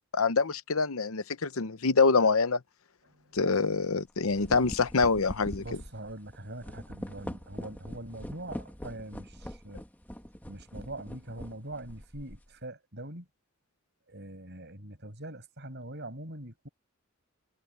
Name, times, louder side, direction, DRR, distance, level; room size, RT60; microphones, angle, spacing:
voice 1, 0.1-2.6 3.3-5.6, left 4 dB, 70° left, 0.8 m, -25 dB
voice 2, 3.1-3.4 5.6-9.8 10.5-13.3 14.1-16.7, right 1 dB, 50° right, 7.5 m, -43 dB
sound 1, 3.4-3.6 4.1-12.5, equal, 10° left, 1.6 m, -43 dB
head